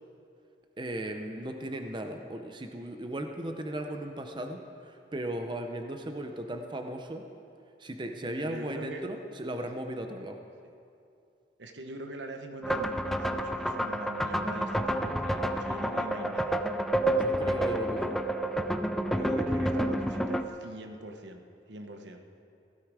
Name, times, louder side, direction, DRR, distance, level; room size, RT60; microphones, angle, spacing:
voice 1, 0.8-7.3 7.8-10.4 17.1-18.2, right 1 dB, 25° right, 5 dB, 0.7 m, -36 dB
voice 2, 8.4-9.1 9.4-9.5 11.6-16.6 19.1-21.4 21.7-22.2, right 1 dB, 85° right, 5 dB, 1.1 m, -42 dB
sound 1, 12.6-20.4, right 1 dB, ahead, 0.4 m, -29 dB
16.0 x 12.5 x 4.8 m, 2.5 s
head